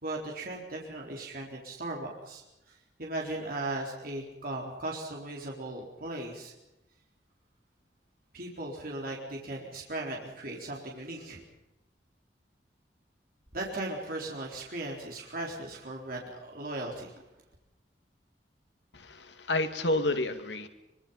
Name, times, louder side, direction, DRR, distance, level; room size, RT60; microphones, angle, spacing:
voice 1, 0.0-2.4 2.7-6.5 8.3-11.4 13.5-17.1, right 2 dB, 55° right, -1 dB, 4.1 m, -37 dB
voice 2, 18.9-20.7, left 2 dB, 85° left, 7 dB, 2.4 m, -30 dB
24.0 x 23.0 x 5.7 m, 0.94 s
head